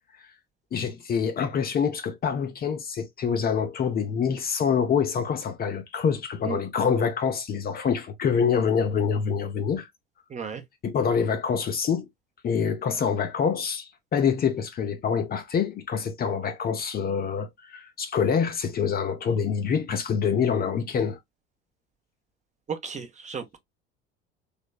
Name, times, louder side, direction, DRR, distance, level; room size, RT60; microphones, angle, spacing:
voice 1, 0.7-9.9 10.8-12.1 12.4-21.2, left 6 dB, 30° left, 0.6 m, -26 dB
voice 2, 10.3-10.6 22.7-23.6, right 6 dB, 25° right, 0.8 m, -34 dB
3.4 x 3.0 x 2.3 m
figure-of-eight pair, 65°, 31 cm